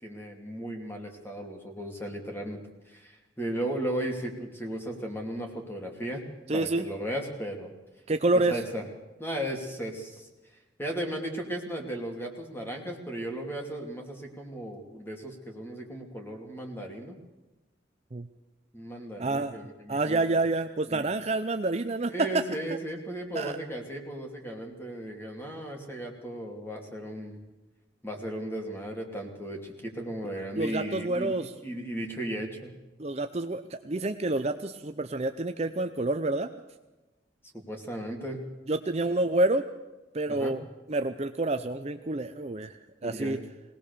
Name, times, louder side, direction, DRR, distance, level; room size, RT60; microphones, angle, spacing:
voice 1, 0.0-6.3 6.5-7.7 8.5-8.8 9.2-10.3 10.8-17.2 18.7-20.2 20.9-21.1 22.1-27.4 28.0-31.3 31.6-32.8 37.5-38.4 40.3-40.6 43.0-43.4, right 1 dB, 10° left, 2 dB, 2.6 m, -36 dB
voice 2, 6.5-6.9 8.1-8.6 18.1-18.3 19.2-19.6 19.9-22.4 23.3-23.6 30.6-31.5 33.0-36.5 38.7-39.6 40.1-40.6 40.9-43.4, right 2 dB, 35° right, 8 dB, 0.6 m, -28 dB
21.0 x 18.5 x 6.8 m, 1.1 s
head